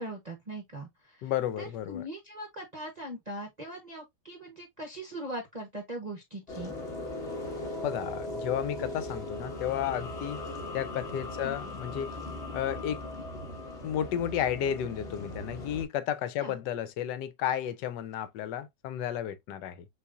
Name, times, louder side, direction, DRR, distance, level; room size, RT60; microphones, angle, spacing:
voice 1, 0.0-1.3 1.6-6.7 11.4-11.6 16.4-16.6, right 1 dB, 40° right, 0.6 m, -40 dB
voice 2, 1.2-2.0 7.8-10.4 10.7-12.1 12.5-13.0 13.8-19.9, left 10 dB, 85° left, 1.2 m, -32 dB
sound 1, 6.5-15.9, left 1 dB, 40° left, 1.4 m, -38 dB
6.4 x 2.8 x 2.4 m
omnidirectional pair, 1.8 m